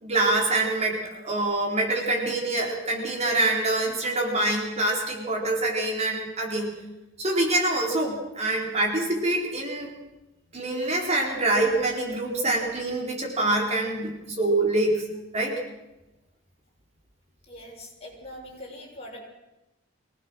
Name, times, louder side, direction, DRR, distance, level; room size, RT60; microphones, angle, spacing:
voice 1, 0.0-6.7 7.2-9.9 10.5-15.0 15.3-15.6, right 2 dB, 35° right, 0 dB, 4.2 m, -25 dB
voice 2, 17.5-19.2, left 1 dB, 35° left, -1 dB, 6.6 m, -42 dB
24.5 x 18.5 x 6.4 m, 0.98 s
head